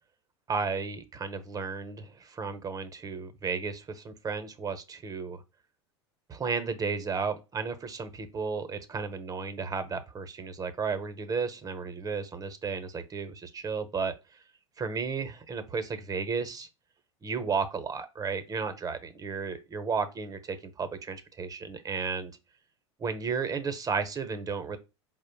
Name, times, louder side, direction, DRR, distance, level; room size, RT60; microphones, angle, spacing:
voice 1, 0.5-5.4 6.3-14.1 14.8-16.7 17.2-22.3 23.0-24.8, right 5 dB, 25° right, 0.8 m, -33 dB
4.8 x 2.1 x 4.5 m
hypercardioid pair, 85°, 15 cm